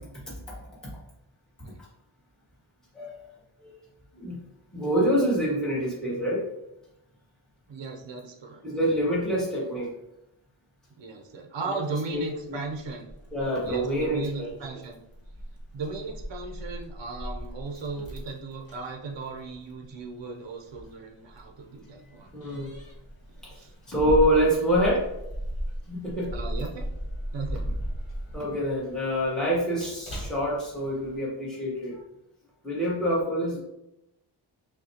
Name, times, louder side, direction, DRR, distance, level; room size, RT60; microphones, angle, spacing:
voice 1, 2.9-3.3 3.6-3.7 4.2-4.4 4.7-6.4 8.6-9.9 11.6-11.8 12.1-12.2 13.3-14.5 22.3-22.7 23.4-23.6 23.9-25.0 25.9-26.3 28.3-32.0 32.6-33.6, equal, ahead, -7 dB, 1.4 m, -26 dB
voice 2, 7.7-8.6 11.0-13.1 13.6-15.0 15.7-22.3 23.4-23.7 26.3-26.9 27.3-27.6, right 4 dB, 60° right, 2 dB, 0.7 m, -37 dB
Keys jangling, 12.1-31.2, equal, 45° left, 1.5 m, -37 dB
6.2 x 2.3 x 2.8 m, 0.87 s
wide cardioid pair, 95°, 49 cm